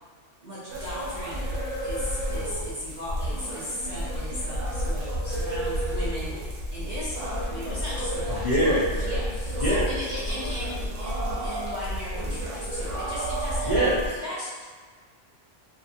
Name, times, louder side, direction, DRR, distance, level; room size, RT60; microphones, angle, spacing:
voice 1, 0.4-1.6 1.8-8.4 9.0-13.7 14.2-14.6, left 1 dB, 50° right, -9 dB, 0.6 m, -36 dB
sound 1, 0.7-14.1, equal, 75° right, 1.0 m, -30 dB
voice 2, 8.4-9.1 9.6-9.9 13.6-14.2, right 1 dB, 45° left, -9 dB, 0.6 m, -24 dB
2.7 x 2.4 x 2.5 m, 1.5 s
omnidirectional pair, 1.2 m